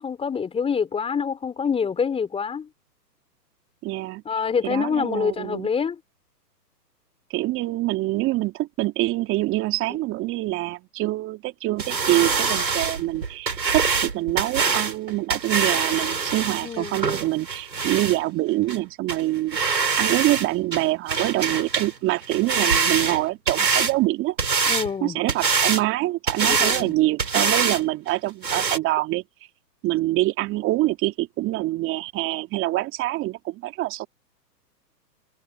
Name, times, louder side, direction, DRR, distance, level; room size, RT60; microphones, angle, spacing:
voice 1, 0.0-2.7 4.3-6.0 16.6-17.0 24.7-25.2 26.4-26.9, left 6 dB, 10° left, 3.9 m, -26 dB
voice 2, 3.8-4.2 4.6-5.7 7.3-19.6 20.0-24.4 25.0-29.2 29.8-34.1, right 17 dB, 25° right, 2.9 m, -25 dB
sound 1, 11.8-18.2 18.7-18.8 19.1-19.2 19.5-20.5 20.7-21.9 22.2-23.9 24.4-24.9 25.3-25.8 26.3-26.9 27.2-27.8 28.1-28.2 28.4-28.8, right 5 dB, 85° right, 5.0 m, -24 dB
hypercardioid pair, 130°, 50 cm